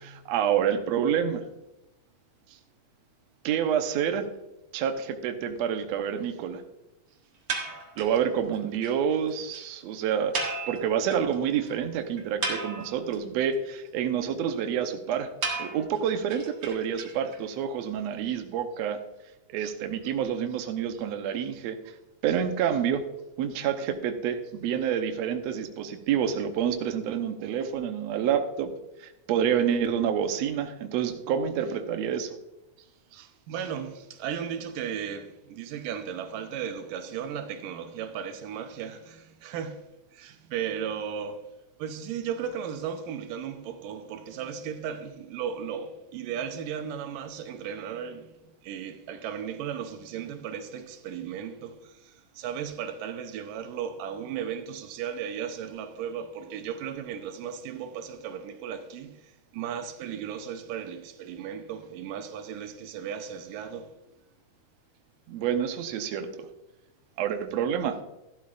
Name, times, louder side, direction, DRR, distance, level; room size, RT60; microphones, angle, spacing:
voice 1, 0.0-1.4 3.4-4.3 4.7-6.6 8.0-10.4 10.7-15.3 15.6-19.0 19.5-21.8 22.2-23.0 23.4-28.7 29.0-32.4 65.3-66.5 67.2-68.0, right 8 dB, 70° right, 1.8 m, -28 dB
sound 1, 7.5-8.2 8.5-8.6 8.8-8.9 9.2-9.3 9.5-9.6 10.3-11.3 11.7-11.8 12.2-13.2 15.4-17.4, right 4 dB, 50° right, 2.2 m, -33 dB
voice 2, 32.8-39.9 40.1-41.4 41.8-64.0, right 8 dB, 85° right, 2.5 m, -36 dB
13.5 x 12.0 x 2.5 m
omnidirectional pair, 3.8 m